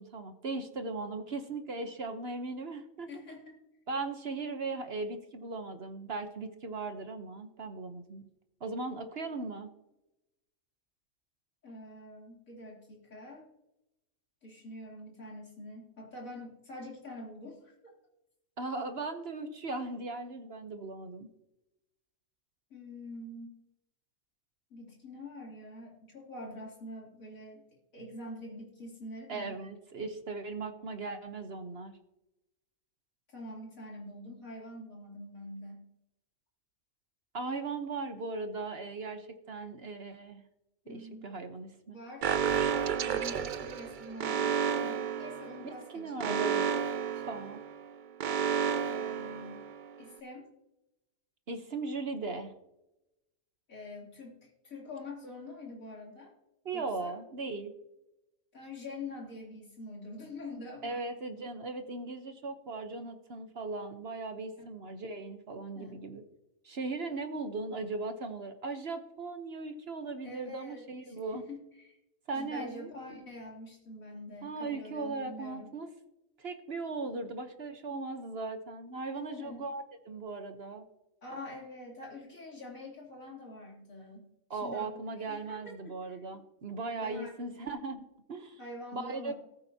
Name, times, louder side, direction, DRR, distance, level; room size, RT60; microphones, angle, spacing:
voice 1, 0.0-3.1 3.9-8.2 8.6-9.7 18.6-21.3 29.3-31.9 37.3-40.4 40.9-42.0 45.9-46.8 47.3-47.6 51.5-52.5 56.6-57.7 60.8-66.2 66.6-71.4 72.3-72.9 74.4-75.9 76.4-80.8 84.5-88.6 88.9-89.3, right 3 dB, 50° right, 7 dB, 1.1 m, -38 dB
voice 2, 3.1-3.9 11.6-13.5 14.4-17.8 22.7-23.6 24.7-29.6 33.3-35.8 40.8-41.3 41.9-42.6 43.0-46.5 48.9-49.6 50.0-50.5 53.7-56.3 56.7-57.2 58.5-61.0 65.7-66.0 70.2-72.0 72.3-75.7 79.1-79.7 81.2-84.9 85.3-86.2 87.0-87.3 87.6-87.7 88.6-89.3, left 1 dB, 75° left, -3 dB, 3.6 m, -45 dB
Alarm, 42.2-50.0, right 7 dB, 70° right, 0.4 m, -32 dB
19.0 x 8.1 x 2.8 m, 0.90 s
omnidirectional pair, 1.4 m